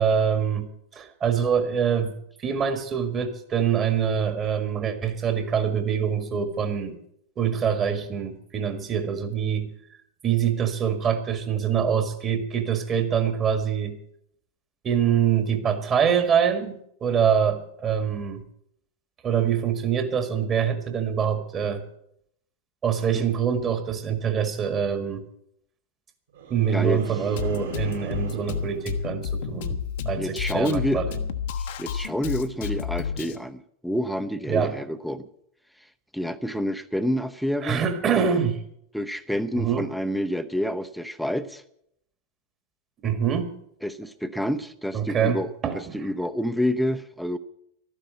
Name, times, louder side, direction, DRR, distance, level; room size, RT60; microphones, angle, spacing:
voice 1, 0.0-2.1 2.4-7.0 7.4-9.7 10.2-14.0 14.8-18.4 19.2-21.8 22.8-25.2 26.5-29.8 30.1-31.2 34.5-34.7 37.6-38.6 39.5-39.9 43.0-43.5 44.9-45.9, right 7 dB, 25° right, 8 dB, 1.8 m, -25 dB
sound 1, 26.3-29.8 30.1-30.5, right 6 dB, 65° right, 4.7 m, -40 dB
voice 2, 26.7-27.0 30.2-31.0 31.6-35.3 36.1-37.8 38.9-41.6 43.8-47.4, equal, ahead, 10 dB, 0.8 m, -28 dB
Drum kit, 27.4-33.4, left 6 dB, 55° left, 1.0 m, -31 dB
13.0 x 10.0 x 7.6 m, 0.72 s
figure-of-eight pair, 90°, 0 cm